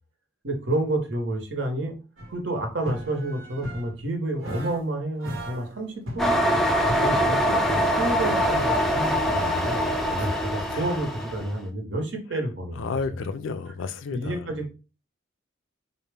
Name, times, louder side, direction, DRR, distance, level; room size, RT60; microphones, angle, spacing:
voice 1, 0.4-2.0 2.3-6.3 7.0-13.0 14.1-14.7, right 1 dB, 65° right, 0.9 m, -29 dB
sound 1, 2.2-2.4 2.8-4.0 4.4-4.9 5.2-7.6, equal, 90° right, 1.0 m, -38 dB
sound 2, 6.2-11.5, equal, ahead, 0.4 m, -24 dB
voice 2, 12.8-14.5, left 4 dB, 80° left, 0.4 m, -32 dB
4.1 x 2.1 x 3.4 m
head